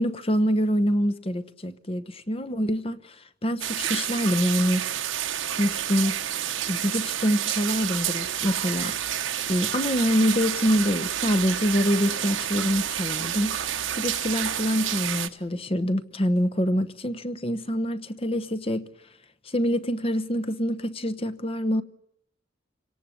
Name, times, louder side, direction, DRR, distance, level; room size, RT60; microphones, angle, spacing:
voice 1, 0.0-3.1 3.4-4.8 5.6-6.2 6.7-9.0 9.5-13.6 14.0-18.9 19.5-21.8, equal, 30° left, 1.0 m, -25 dB
sound 1, 3.6-15.3, right 10 dB, 85° right, 1.3 m, -29 dB
27.5 x 18.0 x 8.5 m
head